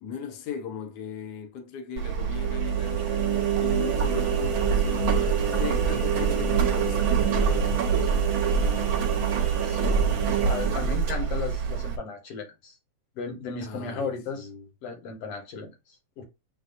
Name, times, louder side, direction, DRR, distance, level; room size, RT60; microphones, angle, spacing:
voice 1, 0.0-7.9 13.6-14.7, left 6 dB, 90° left, 0.9 m, -38 dB
Engine, 2.0-12.0, right 6 dB, 50° right, 1.6 m, -24 dB
voice 2, 9.6-12.8 13.2-14.5 14.8-16.2, left 4 dB, 55° left, 2.3 m, -36 dB
7.7 x 2.6 x 2.6 m
omnidirectional pair, 3.4 m